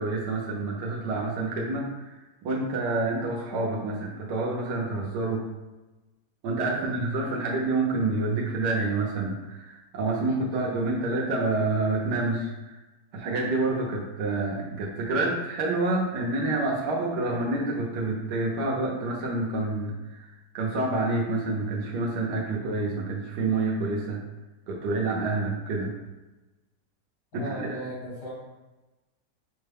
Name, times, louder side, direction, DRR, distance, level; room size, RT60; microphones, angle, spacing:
voice 1, 0.0-5.5 6.4-12.7 13.1-19.9 20.5-24.2 24.7-25.9 27.3-27.8, right 2 dB, 70° right, -2 dB, 1.4 m, -28 dB
voice 2, 10.3-10.6 22.5-22.8 27.4-28.3, right 1 dB, 80° left, -5 dB, 2.1 m, -38 dB
5.3 x 2.2 x 3.4 m, 1.1 s
omnidirectional pair, 1.9 m